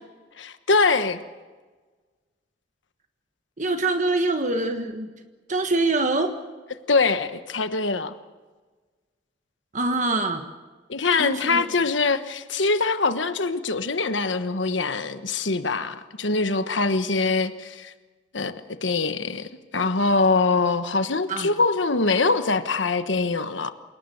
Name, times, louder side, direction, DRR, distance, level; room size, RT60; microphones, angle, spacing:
voice 1, 0.4-1.2 6.9-8.1 10.9-17.9 18.3-18.5 18.8-23.7, left 3 dB, 80° left, 10 dB, 1.3 m, -23 dB
voice 2, 3.6-5.1 5.5-6.3 9.7-10.4 11.2-11.7 21.3-21.5, right 2 dB, 40° right, 6 dB, 1.5 m, -24 dB
28.5 x 18.5 x 7.8 m, 1.3 s
head